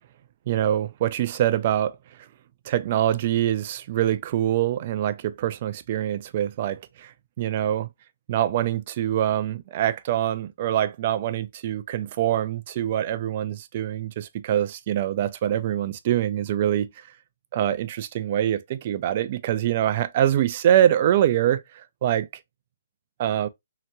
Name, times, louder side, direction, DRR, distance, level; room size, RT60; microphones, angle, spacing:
voice 1, 0.5-2.0 2.7-7.9 8.3-17.1 17.5-22.3 23.2-23.5, right 11 dB, 40° right, 0.3 m, -24 dB
2.8 x 2.1 x 2.8 m
hypercardioid pair, 150°, 0 cm